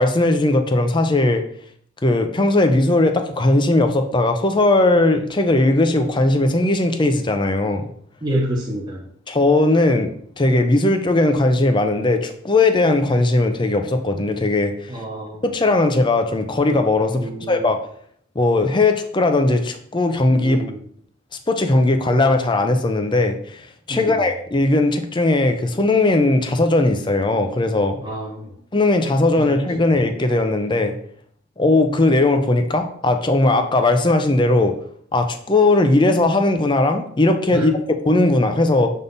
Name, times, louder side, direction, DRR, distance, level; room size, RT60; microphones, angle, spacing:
voice 1, 0.0-1.4 2.0-7.9 9.3-14.9 15.4-17.2 17.5-17.8 18.4-20.6 21.5-23.6 23.9-28.0 28.7-31.0 31.6-34.7 35.1-38.9, left 2 dB, 25° left, 6 dB, 0.5 m, -18 dB
voice 2, 8.2-9.1 14.9-15.6 17.1-17.7 20.4-20.8 23.9-24.3 28.0-28.6 29.2-29.6 29.9-30.0 37.5-37.7, right 1 dB, 20° right, -3 dB, 0.9 m, -28 dB
7.0 x 3.6 x 4.0 m, 0.63 s
head